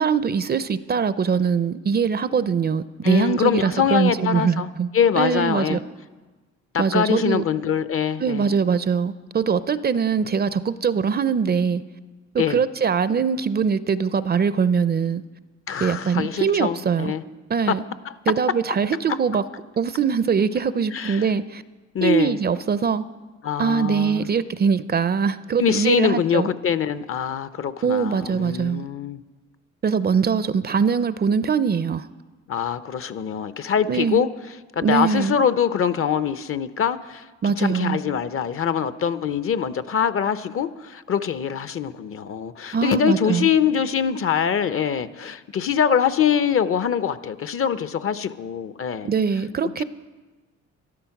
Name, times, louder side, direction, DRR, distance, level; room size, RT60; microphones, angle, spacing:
voice 1, 0.0-4.9 5.2-5.8 6.8-7.4 8.2-11.8 12.3-15.2 15.8-17.1 17.5-17.8 18.3-19.4 19.8-21.6 22.0-23.0 23.6-26.5 27.8-28.9 29.8-32.1 33.9-34.2 34.8-35.4 37.4-38.0 42.7-43.5 49.0-49.8, right 6 dB, 35° right, 0.5 m, -22 dB
voice 2, 3.0-4.7 4.9-5.8 6.7-8.5 12.4-12.6 15.7-17.2 17.7-17.8 18.0-18.1 20.9-21.3 21.9-22.4 23.4-24.3 25.6-29.2 32.5-34.3 34.8-49.1 49.8-49.9, left 8 dB, 45° left, 0.7 m, -23 dB
13.5 x 12.0 x 5.9 m
cardioid pair, 90°, 30 cm